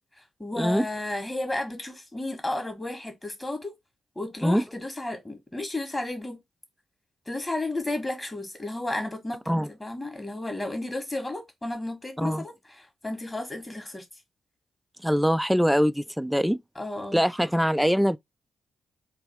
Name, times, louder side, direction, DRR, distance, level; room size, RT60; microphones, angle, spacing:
voice 1, 0.4-3.7 4.2-6.4 7.3-9.4 9.7-14.0 16.8-17.2, left 2 dB, 20° left, 1.6 m, -33 dB
voice 2, 15.0-16.6 17.1-18.2, equal, ahead, 0.3 m, -23 dB
3.4 x 2.6 x 4.4 m
supercardioid pair, 50°, 0 cm